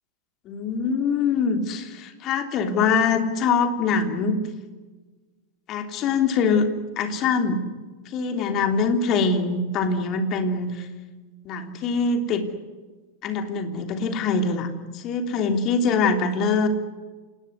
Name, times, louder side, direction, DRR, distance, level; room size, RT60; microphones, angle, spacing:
voice 1, 0.4-4.4 5.7-6.7 7.0-7.6 8.0-10.9 11.4-12.4 13.2-14.7 14.9-16.7, left 4 dB, 35° left, 7 dB, 3.2 m, -23 dB
27.5 x 19.5 x 9.7 m, 1.3 s
figure-of-eight pair, 90°, 0 cm